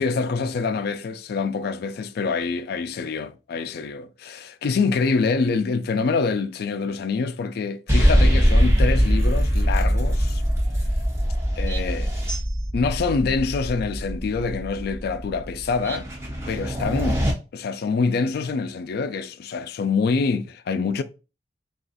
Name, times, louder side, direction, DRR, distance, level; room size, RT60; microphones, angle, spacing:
voice 1, 0.0-10.4 11.6-12.1 12.7-16.1 16.5-17.2 17.5-21.0, left 4 dB, 60° left, 0.3 m, -25 dB
sound 1, 7.9-17.3, equal, 15° right, 1.1 m, -22 dB
2.5 x 2.4 x 3.8 m
head